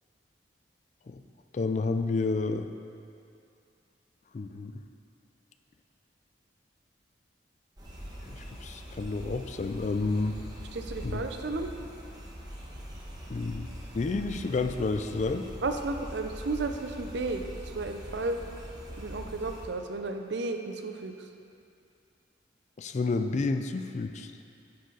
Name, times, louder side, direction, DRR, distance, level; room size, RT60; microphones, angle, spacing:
voice 1, 1.5-2.7 4.3-4.7 8.3-10.4 11.0-11.2 13.3-13.7 13.9-15.5 22.8-24.3, left 3 dB, 40° left, 7 dB, 0.4 m, -30 dB
sound 1, 7.8-19.7, equal, 20° right, 1.2 m, -42 dB
voice 2, 10.7-11.7 15.6-18.4 19.0-21.3, right 3 dB, 65° right, 6 dB, 0.6 m, -33 dB
9.4 x 6.6 x 3.9 m, 2.5 s
head